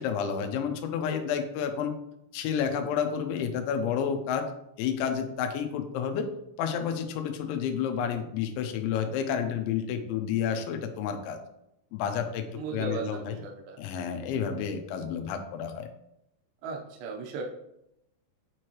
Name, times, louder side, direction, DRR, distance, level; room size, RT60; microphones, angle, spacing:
voice 1, 0.0-1.9 2.3-4.5 4.8-6.3 6.6-11.4 11.9-13.4 13.8-15.9, left 7 dB, 85° left, 6 dB, 3.0 m, -30 dB
voice 2, 12.5-13.8 16.6-17.4, right 4 dB, 80° right, 2 dB, 3.1 m, -36 dB
8.7 x 4.7 x 3.0 m, 0.83 s
omnidirectional pair, 5.3 m